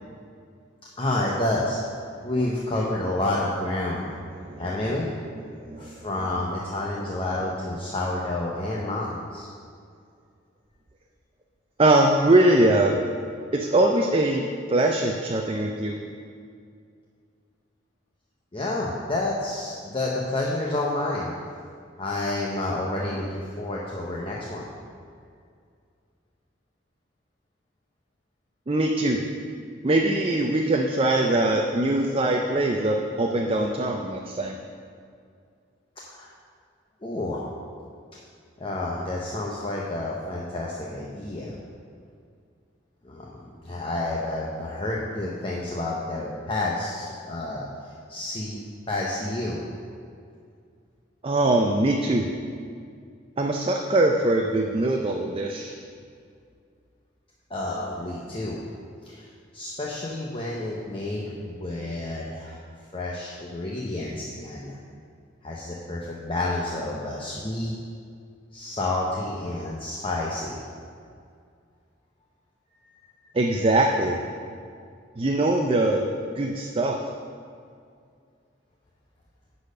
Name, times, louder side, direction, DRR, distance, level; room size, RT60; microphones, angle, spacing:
voice 1, 1.0-4.1 4.6-5.1 5.8-9.5 18.5-21.3 22.0-24.7 36.0-36.3 37.0-37.4 38.6-41.6 43.0-49.6 57.5-58.6 59.0-62.6 62.9-64.8 65.4-67.7 68.5-70.6 72.8-73.1, left 2 dB, 30° left, -4 dB, 0.8 m, -29 dB
voice 2, 4.4-5.1 5.5-5.9 11.8-13.0 13.5-14.4 14.7-16.0 28.7-29.2 29.8-34.6 51.2-52.3 53.4-55.7 73.3-74.2 75.2-76.1 76.4-77.2, right 2 dB, 30° right, 2 dB, 0.5 m, -22 dB
10.0 x 4.2 x 6.5 m, 2.3 s
head